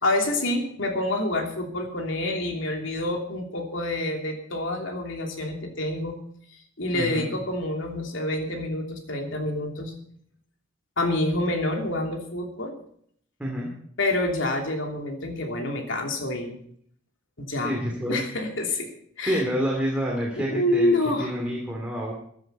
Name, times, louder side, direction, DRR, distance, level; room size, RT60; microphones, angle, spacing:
voice 1, 0.0-6.2 6.8-9.9 11.0-12.7 14.0-16.6 17.4-17.8 18.1-18.9 19.2-19.4 20.4-21.3, left 1 dB, 75° left, 2 dB, 3.0 m, -27 dB
voice 2, 6.9-7.3 13.4-13.7 17.6-18.2 19.2-20.9 21.2-22.1, equal, 5° right, -3 dB, 2.8 m, -28 dB
15.0 x 10.5 x 5.6 m, 0.65 s
head